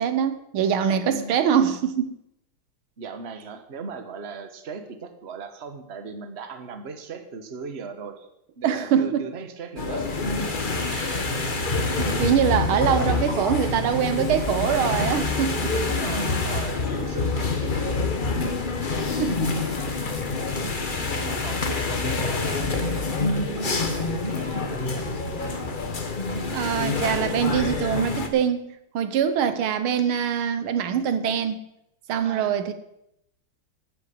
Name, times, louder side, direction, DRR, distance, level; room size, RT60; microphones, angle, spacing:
voice 1, 0.0-2.2 8.6-9.3 10.9-11.4 12.0-15.6 19.2-19.5 26.5-31.6 32.1-32.7, right 8 dB, 80° right, 1.7 m, -24 dB
voice 2, 1.0-1.4 3.0-8.3 8.6-10.1 10.4-10.9 15.6-18.0 19.1-19.4 19.7-20.0 21.1-25.0 32.2-32.6, right 4 dB, 35° right, 1.3 m, -38 dB
sound 1, 9.8-28.3, left 3 dB, 30° left, 1.0 m, -26 dB
10.5 x 8.7 x 7.9 m
omnidirectional pair, 2.3 m